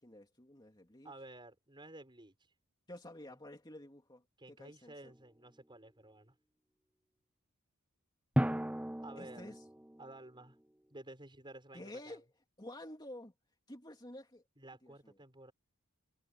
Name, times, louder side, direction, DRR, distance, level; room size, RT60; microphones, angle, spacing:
voice 1, 0.0-1.1 2.9-4.2 4.5-5.1 9.2-9.6 11.7-12.2 12.6-13.3 13.7-14.4 14.8-15.1, left 1 dB, 20° left, 2.9 m, -50 dB
voice 2, 1.0-2.3 4.4-6.3 9.0-9.5 10.0-10.6 10.9-12.2 14.6-15.5, right 2 dB, 20° right, 6.9 m, -53 dB
Drum, 5.1-5.2 8.4-10.1, equal, 5° right, 0.6 m, -35 dB
head